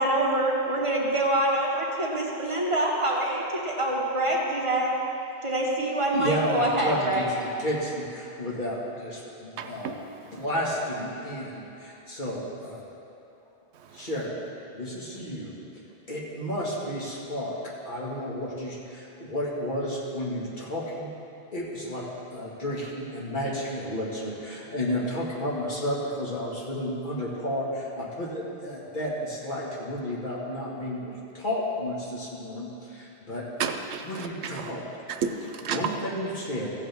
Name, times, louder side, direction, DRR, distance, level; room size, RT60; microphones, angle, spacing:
voice 1, 0.0-4.9 5.4-7.3, right 1 dB, 30° right, -3 dB, 1.3 m, -25 dB
voice 2, 6.1-9.9 10.3-12.8 13.9-14.3 14.7-15.5 16.1-17.6 17.9-21.1 21.5-22.0 22.3-33.4 34.0-34.8 35.7-36.7, equal, 50° left, -6 dB, 2.0 m, -32 dB
voice 3, 9.6-10.0 10.2-10.4 13.9-14.0 33.6-34.7 35.1-35.8, right 6 dB, 90° right, 6 dB, 1.0 m, -32 dB
15.0 x 8.2 x 3.5 m, 2.9 s
omnidirectional pair, 1.1 m